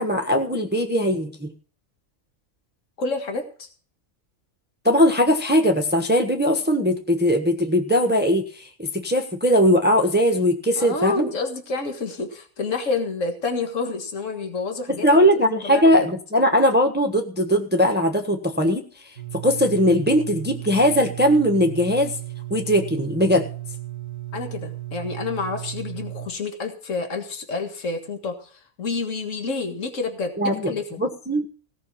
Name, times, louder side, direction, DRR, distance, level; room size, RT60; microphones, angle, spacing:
voice 1, 0.0-1.5 4.8-11.3 15.0-19.1 19.4-22.1 22.5-23.4 30.4-30.7 31.0-31.5, equal, 10° right, 4 dB, 1.3 m, -20 dB
voice 2, 3.0-3.7 10.8-15.1 15.6-16.1 24.3-31.0, left 4 dB, 65° left, 4 dB, 2.2 m, -29 dB
sound 1, 19.2-26.3, right 16 dB, 45° right, 1.6 m, -35 dB
17.5 x 6.0 x 7.4 m, 0.42 s
omnidirectional pair, 1.4 m